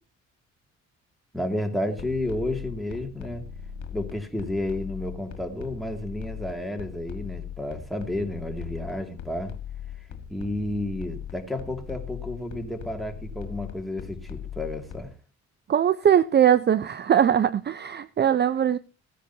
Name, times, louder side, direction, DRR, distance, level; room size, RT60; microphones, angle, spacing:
voice 1, 1.3-3.5 3.9-9.5 10.3-15.1, left 1 dB, ahead, 2.3 m, -31 dB
sound 1, 1.9-15.0, left 8 dB, 70° left, 1.7 m, -39 dB
voice 2, 15.7-18.8, right 9 dB, 35° right, 0.5 m, -21 dB
17.0 x 10.0 x 2.8 m
cardioid pair, 90°, 30 cm